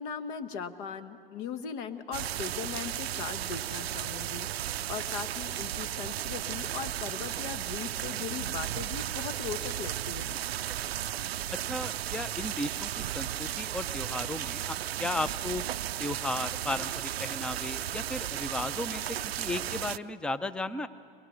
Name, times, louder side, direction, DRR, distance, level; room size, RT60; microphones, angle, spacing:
voice 1, 0.0-10.4, left 7 dB, 55° left, 10 dB, 1.4 m, -39 dB
sound 1, 2.1-20.0, right 12 dB, 85° right, 0.5 m, -35 dB
voice 2, 11.7-15.6 16.0-20.9, left 2 dB, 5° left, 13 dB, 0.5 m, -35 dB
22.5 x 21.0 x 6.3 m, 2.3 s
hypercardioid pair, 100°, 30 cm